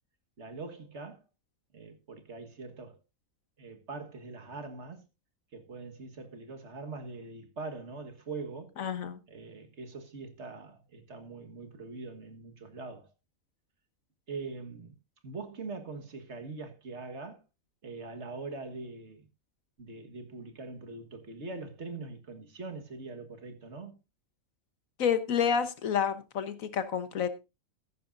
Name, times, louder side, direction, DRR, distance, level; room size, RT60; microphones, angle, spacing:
voice 1, 0.4-1.3 1.7-3.0 3.6-5.0 5.5-8.7 9.3-13.1 14.3-14.9 15.2-17.4 17.8-19.3 19.8-24.0, right 3 dB, 55° right, 1.8 m, -42 dB
voice 2, 8.8-9.2 25.0-27.3, left 7 dB, 80° left, 1.5 m, -29 dB
14.5 x 10.5 x 2.6 m
omnidirectional pair, 1.4 m